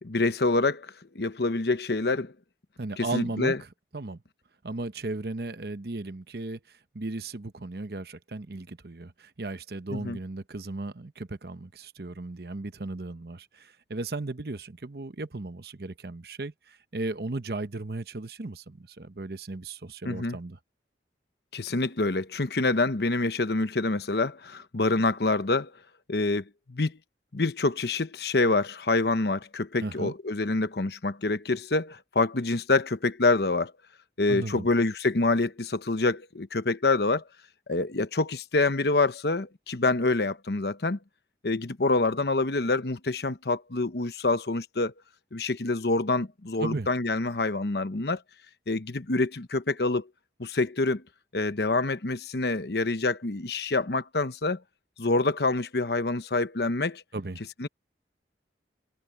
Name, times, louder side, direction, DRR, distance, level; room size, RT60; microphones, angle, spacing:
voice 1, 0.0-2.3 3.0-3.6 9.9-10.2 20.0-20.4 21.5-25.7 26.1-27.0 27.3-33.7 34.2-37.2 37.7-41.0 41.4-44.9 45.3-48.2 48.7-50.1 50.4-51.0 51.3-54.6 55.0-57.0 57.6-57.7, left 3 dB, 65° left, 1.0 m, -26 dB
voice 2, 2.8-3.5 3.9-4.2 4.6-20.6 29.8-30.1 34.3-34.7 46.6-46.9 57.1-57.5, right 2 dB, 60° right, 0.9 m, -36 dB
head